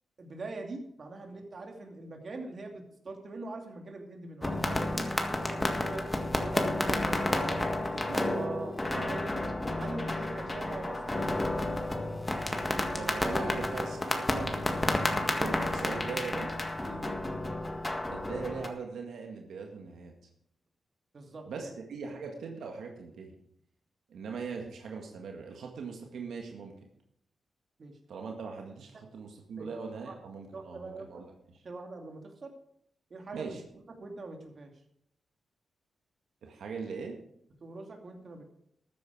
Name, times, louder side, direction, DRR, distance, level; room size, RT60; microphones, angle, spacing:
voice 1, 0.2-6.1 6.4-7.3 8.2-8.4 8.8-9.4 9.8-11.4 16.8-17.0 21.1-21.7 27.8-27.9 29.6-29.7 30.1-30.2 30.5-31.3 31.6-32.5 33.1-33.5 34.0-34.7 37.6-38.4, right 2 dB, 50° right, 3 dB, 2.6 m, -42 dB
sound 1, 4.4-18.7, left 2 dB, 20° left, 1.7 m, -31 dB
voice 2, 7.3-9.1 12.9-16.5 18.1-20.1 21.5-23.4 24.1-26.7 28.1-31.3 33.3-33.6 36.4-37.2, right 5 dB, 85° right, 2 dB, 1.9 m, -40 dB
13.5 x 9.5 x 4.8 m, 0.73 s
cardioid pair, 80°, 0 cm